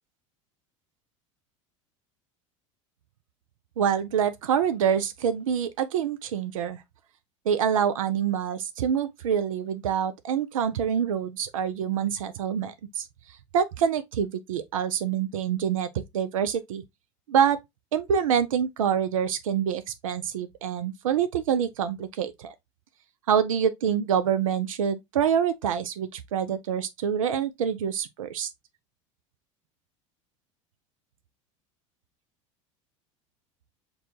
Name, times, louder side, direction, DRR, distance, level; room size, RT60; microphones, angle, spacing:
voice 1, 3.8-6.8 7.5-15.9 16.1-16.8 17.3-17.6 17.9-22.5 23.3-28.5, right 8 dB, 90° right, 0.4 m, -26 dB
6.6 x 2.3 x 2.6 m
hypercardioid pair, 85°, 17 cm